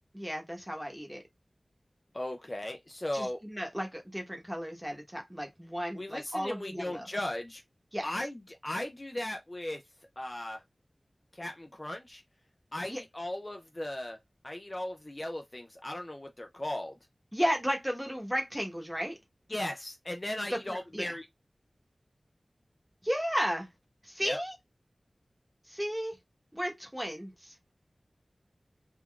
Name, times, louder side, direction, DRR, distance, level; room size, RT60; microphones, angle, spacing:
voice 1, 0.1-1.2 3.1-7.1 7.9-8.2 12.9-13.0 17.3-19.1 20.5-21.1 23.0-23.7 24.0-24.5 25.7-26.2 26.5-27.6, equal, 5° right, 1.0 m, -34 dB
voice 2, 2.1-3.4 5.9-7.6 8.0-9.8 10.2-10.6 11.3-12.2 12.7-14.2 14.4-16.9 19.5-21.3 24.2-24.4, left 1 dB, 35° left, 0.4 m, -37 dB
3.7 x 2.2 x 2.3 m
wide cardioid pair, 45°, 0 cm